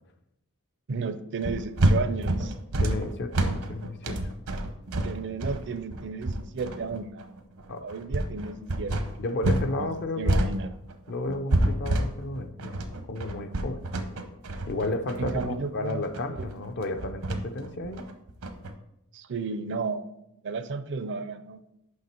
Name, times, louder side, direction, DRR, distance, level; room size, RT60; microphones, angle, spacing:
voice 1, 0.9-2.5 5.0-7.3 7.8-9.1 9.8-10.7 15.2-16.0 16.3-16.5 19.1-20.1 20.4-21.6, right 4 dB, 55° right, 11 dB, 0.5 m, -33 dB
sound 1, 1.4-9.7 10.0-18.7, right 1 dB, 80° right, 0.9 m, -28 dB
voice 2, 2.8-4.3 7.7-7.9 9.2-10.6 11.1-12.8 13.1-13.8 14.7-18.1, left 2 dB, 55° left, 8 dB, 0.6 m, -33 dB
6.4 x 5.7 x 4.4 m, 0.83 s
head